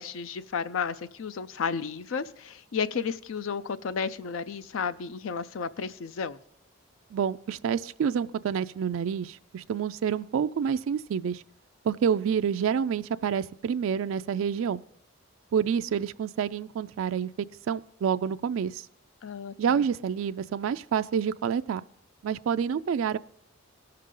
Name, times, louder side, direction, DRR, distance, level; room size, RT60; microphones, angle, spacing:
voice 1, 0.0-6.4 19.2-19.8, left 6 dB, 75° left, 13 dB, 0.5 m, -33 dB
voice 2, 7.1-11.4 11.8-14.8 15.5-17.3 17.7-18.9 19.6-21.8 22.2-23.2, right 7 dB, 75° right, 11 dB, 0.3 m, -28 dB
17.5 x 6.7 x 3.8 m, 0.71 s
head